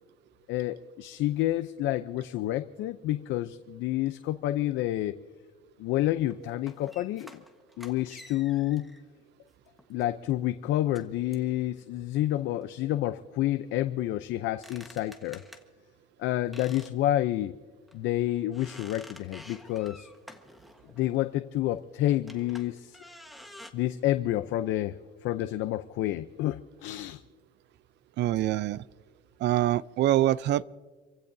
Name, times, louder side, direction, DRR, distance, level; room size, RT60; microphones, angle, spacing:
voice 1, 0.5-5.2 5.8-7.4 7.8-8.9 9.9-15.4 16.2-17.5 17.9-20.1 21.0-23.0 23.7-27.2, left 14 dB, 75° left, 9 dB, 0.6 m, -29 dB
sound 1, 6.3-9.0 9.8-10.0 10.9-11.0 11.3-11.5 14.4-15.6 16.5-16.9 17.3-17.4 17.9-18.0 18.5-21.2 22.2-23.7, left 1 dB, ahead, 1.3 m, -50 dB
voice 2, 28.2-28.8 29.4-30.6, right 13 dB, 60° right, 19 dB, 0.5 m, -25 dB
28.0 x 16.0 x 2.7 m, 1.5 s
cardioid pair, 130°, 20 cm